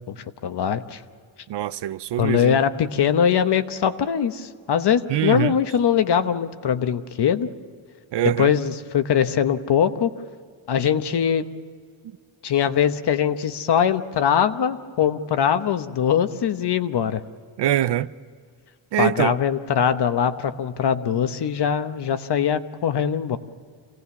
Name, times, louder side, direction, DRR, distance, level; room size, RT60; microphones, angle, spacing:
voice 1, 0.1-1.0 2.2-7.5 8.4-10.1 10.7-11.5 12.4-17.2 19.0-23.4, left 8 dB, 55° left, 1.0 m, -22 dB
voice 2, 1.5-2.6 5.1-5.5 8.1-8.5 17.6-18.1 18.9-19.4, right 12 dB, 60° right, 0.5 m, -23 dB
27.0 x 17.5 x 7.1 m
wide cardioid pair, 165°, 48 cm